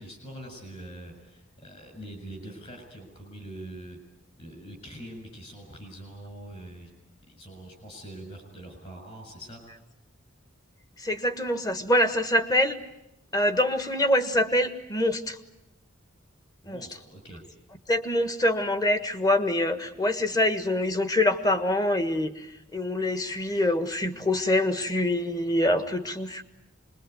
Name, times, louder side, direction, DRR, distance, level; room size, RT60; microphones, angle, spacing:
voice 1, 0.0-4.0 4.4-6.9 7.3-9.6 16.6-17.4, right 1 dB, 35° left, 5 dB, 6.8 m, -43 dB
voice 2, 11.0-12.8 13.3-15.4 16.6-16.9 17.9-22.4 22.7-26.4, left 1 dB, 20° left, 9 dB, 1.5 m, -25 dB
26.0 x 21.5 x 9.4 m, 0.87 s
head